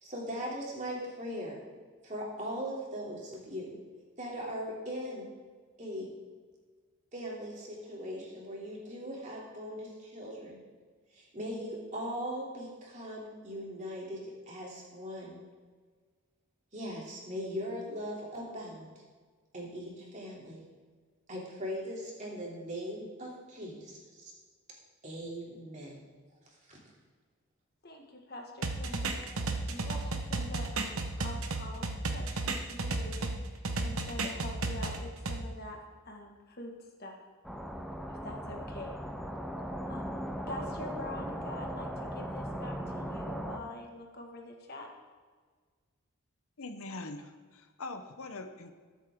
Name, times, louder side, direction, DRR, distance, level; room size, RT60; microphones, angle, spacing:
voice 1, 0.0-1.6 2.0-3.8 4.2-5.3 5.8-6.1 7.1-10.6 11.1-15.4 16.7-18.9 19.5-20.6 21.3-24.3 25.0-26.0 26.7-26.8, equal, 35° right, -3 dB, 3.1 m, -39 dB
voice 2, 27.8-29.3 29.7-35.8 36.0-36.7 37.0-37.2 38.1-39.0 39.9-40.1 40.5-44.9, left 1 dB, 45° left, 1 dB, 1.8 m, -45 dB
sound 1, 28.6-33.3 33.6-35.4, right 3 dB, 75° right, 1.2 m, -33 dB
sound 2, 37.4-43.6, equal, ahead, 0.7 m, -38 dB
voice 3, 46.6-48.7, left 2 dB, 75° left, 7 dB, 1.0 m, -42 dB
21.0 x 8.2 x 3.8 m, 1.5 s
head